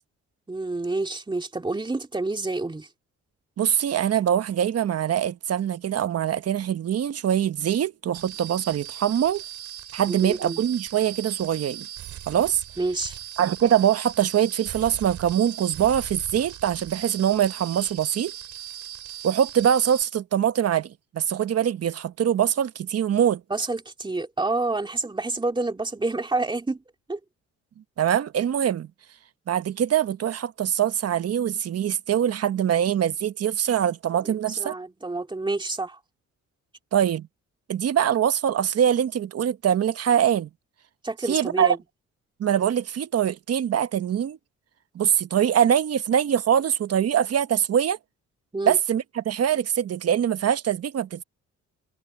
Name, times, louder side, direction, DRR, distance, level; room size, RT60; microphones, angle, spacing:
voice 1, 0.5-2.9 10.1-10.6 12.8-13.2 23.5-26.8 27.1-27.2 34.2-36.0 41.0-41.8 48.5-48.8, right 2 dB, 15° right, 2.4 m, -28 dB
voice 2, 3.6-9.4 9.9-11.9 12.3-12.6 13.4-18.3 19.2-23.4 28.0-28.9 29.5-34.7 36.9-37.3 37.7-40.5 41.3-41.8 42.4-44.4 44.9-48.0 48.6-51.2, right 9 dB, 55° right, 1.2 m, -23 dB
sound 1, 8.1-20.0, right 13 dB, 70° right, 3.4 m, -39 dB
cardioid pair, 90°, 30 cm